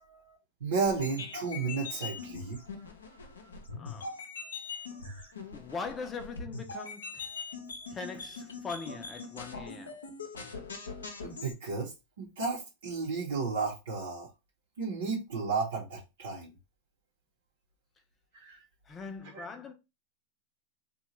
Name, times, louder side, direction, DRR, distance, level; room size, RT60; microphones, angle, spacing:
voice 1, 0.0-2.7 5.0-5.3 7.5-7.7 11.2-11.9 12.2-14.3 14.8-16.5 18.4-18.6 19.3-19.4, right 4 dB, 75° right, 0.8 m, -33 dB
sound 1, 0.8-11.5, left 4 dB, 85° left, 0.6 m, -42 dB
voice 2, 3.8-4.2 5.5-7.3 7.9-10.0 18.9-19.7, left 5 dB, 25° left, 0.6 m, -41 dB
2.8 x 2.3 x 3.0 m
hypercardioid pair, 95°, 0 cm